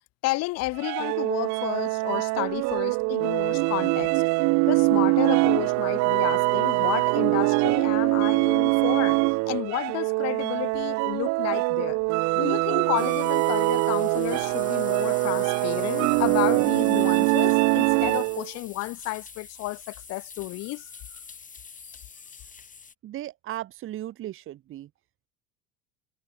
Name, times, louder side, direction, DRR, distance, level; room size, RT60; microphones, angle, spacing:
voice 1, 0.2-4.2 4.7-12.0 12.3-20.9, left 20 dB, 55° left, 1.0 m, -31 dB
sound 1, 0.8-18.5, right 27 dB, 60° right, 1.1 m, -23 dB
sound 2, 13.0-22.9, left 5 dB, 25° left, 6.7 m, -45 dB
voice 2, 23.0-24.9, right 13 dB, 40° right, 1.1 m, -36 dB
hypercardioid pair, 85°, 31 cm